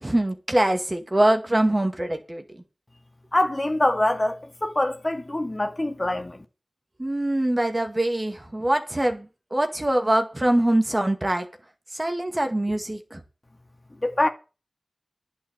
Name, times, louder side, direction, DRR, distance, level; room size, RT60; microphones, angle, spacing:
voice 1, 0.0-2.4 7.0-11.5 11.9-13.2, right 1 dB, 25° right, 2.1 m, -23 dB
voice 2, 3.3-6.4 14.0-14.3, left 1 dB, 30° left, 1.9 m, -24 dB
10.5 x 7.1 x 8.0 m
wide cardioid pair, 55°, 0 cm